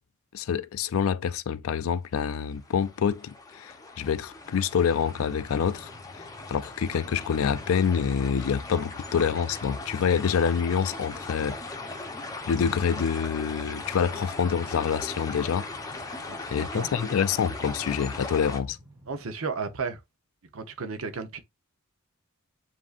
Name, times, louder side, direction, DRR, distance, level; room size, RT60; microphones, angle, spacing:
voice 1, 0.3-11.6 12.5-15.7 16.5-18.8, left 7 dB, 75° left, 0.4 m, -27 dB
sound 1, 2.3-18.6, left 3 dB, 15° left, 0.7 m, -39 dB
Train, 4.2-19.3, left 1 dB, 25° right, 2.3 m, -51 dB
voice 2, 16.3-16.9 19.1-20.0 20.5-21.4, right 4 dB, 80° right, 0.8 m, -34 dB
7.4 x 2.7 x 2.4 m
head